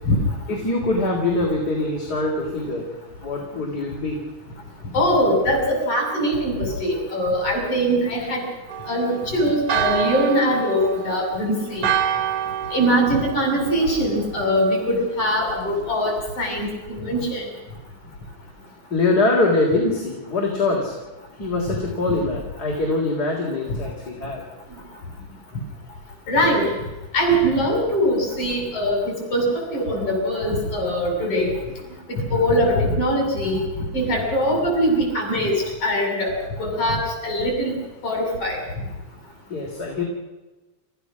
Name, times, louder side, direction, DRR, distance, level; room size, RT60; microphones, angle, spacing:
voice 1, 0.5-3.0 3.2-4.2 18.9-21.0 21.4-24.5 39.5-40.0, left 2 dB, 30° left, -1 dB, 3.7 m, -23 dB
voice 2, 4.9-8.4 8.9-11.9 12.7-17.4 21.7-21.8 26.3-26.8 27.1-31.6 32.1-33.6 33.9-37.7 38.0-38.6, equal, 50° left, 1 dB, 8.1 m, -22 dB
Church bell, 8.7-14.4, right 10 dB, 60° right, 1.8 m, -28 dB
29.5 x 15.5 x 6.2 m, 1.1 s
omnidirectional pair, 3.4 m